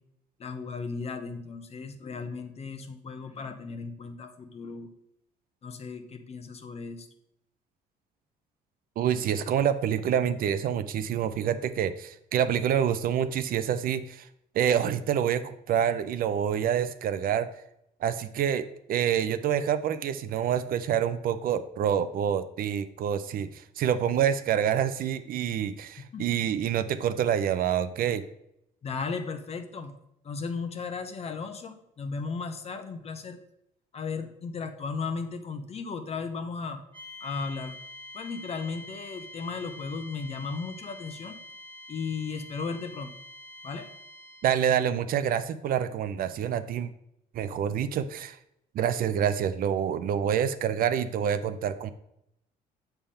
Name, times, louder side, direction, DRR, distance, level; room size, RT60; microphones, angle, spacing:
voice 1, 0.4-4.9 5.6-7.1 26.1-26.4 28.8-29.9 30.2-33.4 33.9-36.8 37.2-37.8 38.1-41.4 41.9-43.1 43.6-43.9, left 4 dB, 40° left, 8 dB, 0.9 m, -35 dB
voice 2, 9.0-14.3 14.5-17.5 18.0-28.2 44.4-46.9 47.3-48.4 48.7-51.9, right 9 dB, 60° right, 11 dB, 0.5 m, -27 dB
sound 1, 36.9-44.6, left 1 dB, 30° right, 1.5 m, -46 dB
7.3 x 3.4 x 5.5 m, 0.79 s
cardioid pair, 110°, 17 cm